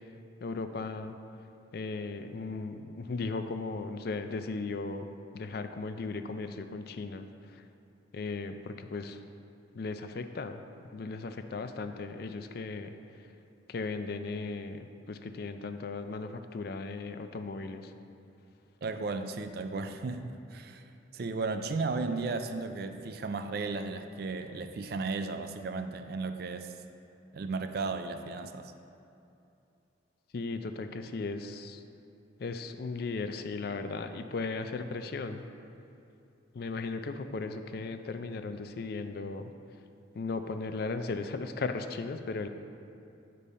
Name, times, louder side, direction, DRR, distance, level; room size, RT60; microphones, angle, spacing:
voice 1, 0.4-1.2 1.7-7.6 8.1-9.2 9.7-10.6 10.9-12.9 13.7-17.9 30.3-31.8 32.4-35.4 36.5-39.5 40.1-42.5, left 3 dB, 55° left, 8 dB, 0.4 m, -36 dB
voice 2, 18.8-20.9 21.1-26.7 27.3-28.7, right 3 dB, 55° right, 8 dB, 0.4 m, -35 dB
8.3 x 5.4 x 4.2 m, 2.7 s
head